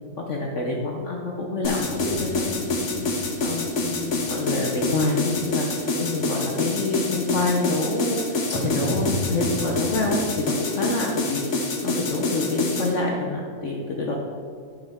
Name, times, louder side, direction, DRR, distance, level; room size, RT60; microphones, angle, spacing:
voice 1, 0.3-3.0 3.4-5.7 6.0-14.1, left 2 dB, 80° left, -1 dB, 0.6 m, -27 dB
sound 1, 1.6-12.9, left 2 dB, 50° left, 1.0 m, -27 dB
sound 2, 1.8-5.9 6.3-6.4 8.5-10.2, equal, 30° left, 0.4 m, -35 dB
11.5 x 5.1 x 3.5 m, 2.3 s
omnidirectional pair, 2.4 m